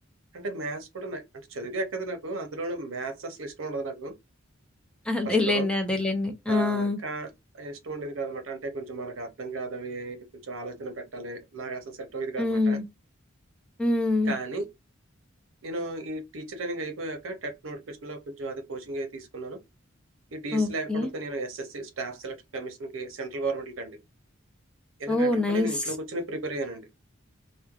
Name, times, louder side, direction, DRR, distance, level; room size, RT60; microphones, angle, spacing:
voice 1, 0.3-1.2 1.5-4.1 5.2-5.7 6.5-7.3 7.5-12.8 14.3-14.7 15.6-19.6 20.3-24.0 25.0-26.9, right 2 dB, 80° right, 0.6 m, -35 dB
voice 2, 5.1-7.0 12.4-12.8 13.8-14.3 20.5-21.1 25.1-25.7, left 2 dB, 5° left, 0.5 m, -25 dB
3.1 x 2.1 x 2.3 m
head